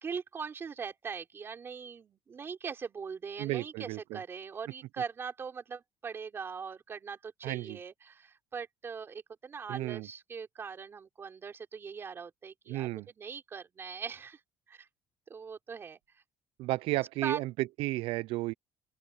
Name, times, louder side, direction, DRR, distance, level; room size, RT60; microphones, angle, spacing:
voice 1, 0.0-14.4 14.7-14.9 15.3-16.2 17.2-17.4, right 6 dB, 25° right, 3.7 m, -41 dB
voice 2, 3.4-4.2 7.4-7.8 9.7-10.1 12.7-13.1 16.6-18.5, right 19 dB, 75° right, 0.3 m, -33 dB
open air
cardioid pair, 175°, 9 cm